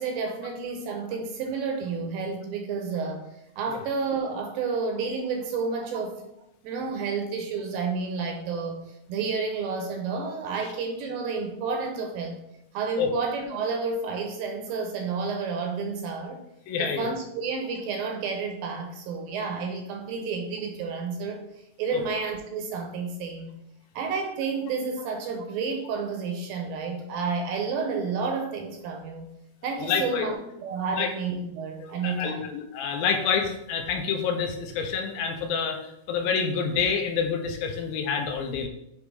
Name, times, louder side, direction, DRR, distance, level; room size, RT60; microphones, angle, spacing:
voice 1, 0.0-3.3 3.6-6.3 6.6-12.4 12.7-16.4 16.8-23.6 24.0-29.3 29.6-32.5, right 4 dB, 80° right, 3 dB, 2.2 m, -30 dB
voice 2, 16.7-17.1 21.9-22.0 29.8-30.3 31.0-31.1 31.8-38.7, left 6 dB, 80° left, 4 dB, 2.3 m, -27 dB
7.1 x 3.5 x 4.8 m, 0.82 s
omnidirectional pair, 4.5 m